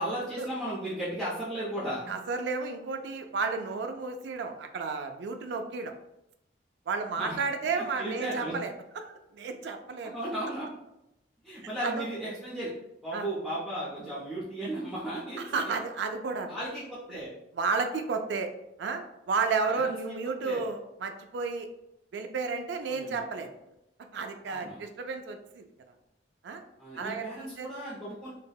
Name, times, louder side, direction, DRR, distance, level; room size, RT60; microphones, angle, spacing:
voice 1, 0.0-2.1 7.1-7.4 7.8-8.5 10.0-10.7 11.4-12.7 13.0-15.6 16.5-17.3 19.7-19.9 20.4-20.7 22.8-23.2 24.5-24.8 26.8-28.3, right 1 dB, ahead, -11 dB, 0.6 m, -35 dB
voice 2, 2.1-5.9 6.9-10.1 11.6-12.0 13.1-13.3 15.4-16.6 17.1-17.2 17.5-18.5 18.8-19.0 19.3-21.7 22.1-23.5 24.1-25.6 26.4-26.6 27.0-27.7, right 4 dB, 70° right, 6 dB, 0.3 m, -32 dB
3.3 x 2.1 x 2.2 m, 0.86 s
head